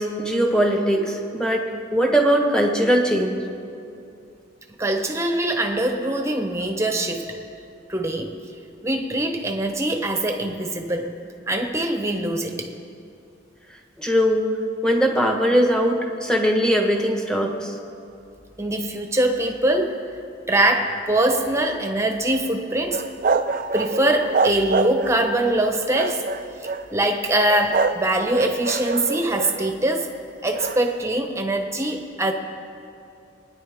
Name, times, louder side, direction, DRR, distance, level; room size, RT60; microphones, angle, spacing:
voice 1, 0.0-1.6 1.9-3.5 14.0-14.6 14.8-17.7, equal, 5° left, 1 dB, 1.2 m, -20 dB
voice 2, 4.8-7.4 7.9-8.3 8.8-11.1 11.5-12.7 18.6-20.0 20.5-23.0 23.7-26.3 26.6-30.1 30.4-32.3, right 1 dB, 15° right, 4 dB, 1.0 m, -23 dB
sound 1, 22.9-25.3 25.9-26.9 27.5-28.0 28.3-29.8 30.5-30.8, right 4 dB, 45° right, 0.4 m, -25 dB
24.0 x 9.9 x 3.6 m, 2.6 s
head